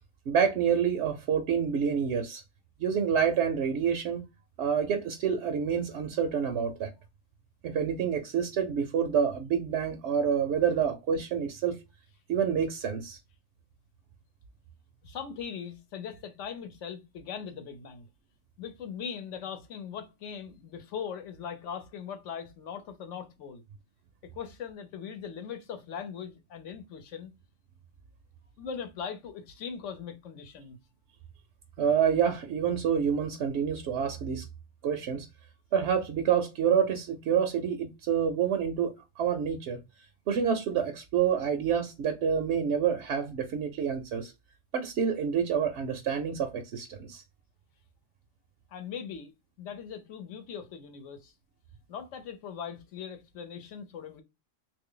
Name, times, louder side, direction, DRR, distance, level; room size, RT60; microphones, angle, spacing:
voice 1, 0.3-2.4 2.8-4.3 4.6-6.9 7.6-11.8 12.3-13.2 31.8-34.4 34.8-35.3 35.7-39.8 40.3-44.3 44.7-47.2, right 7 dB, 65° right, 0.8 m, -28 dB
voice 2, 15.0-18.1 18.6-23.6 24.2-27.3 28.6-30.8 48.7-49.3 49.6-51.3 51.9-54.2, left 7 dB, 65° left, 1.0 m, -40 dB
3.2 x 2.6 x 3.7 m
omnidirectional pair, 1.5 m